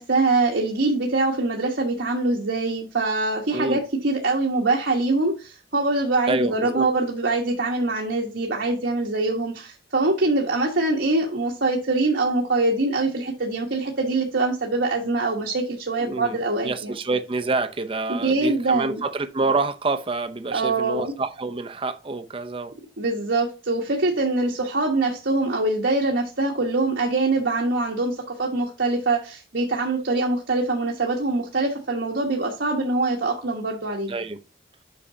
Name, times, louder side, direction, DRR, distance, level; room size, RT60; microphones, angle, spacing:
voice 1, 0.0-16.9 18.1-19.0 20.5-21.2 23.0-34.1, right 2 dB, 70° right, 1.3 m, -24 dB
voice 2, 6.3-6.9 16.0-22.7 34.1-34.4, right 3 dB, 30° right, 0.7 m, -27 dB
8.6 x 5.9 x 2.8 m
head